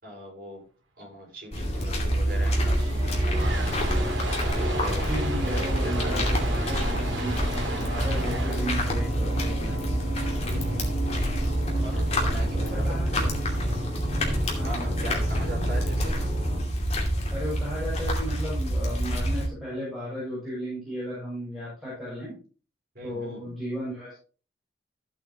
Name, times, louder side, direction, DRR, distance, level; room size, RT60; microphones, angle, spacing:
voice 1, 0.0-0.6 1.0-3.6 4.3-5.1 5.4-6.5 10.4-11.0 11.8-13.3 14.6-16.2 22.9-23.5, equal, 50° right, -2 dB, 5.6 m, -40 dB
sound 1, 1.5-19.5, equal, 35° left, 2.7 m, -27 dB
sound 2, 2.2-10.4, right 3 dB, 85° right, 2.1 m, -36 dB
sound 3, 2.3-16.6, equal, 35° right, 4.8 m, -33 dB
voice 2, 4.9-6.9 7.2-7.3 7.7-9.8 12.2-13.2 14.6-15.2 17.3-22.3 23.0-24.1, equal, ahead, -9 dB, 6.5 m, -35 dB
14.5 x 8.3 x 3.0 m, 0.37 s
head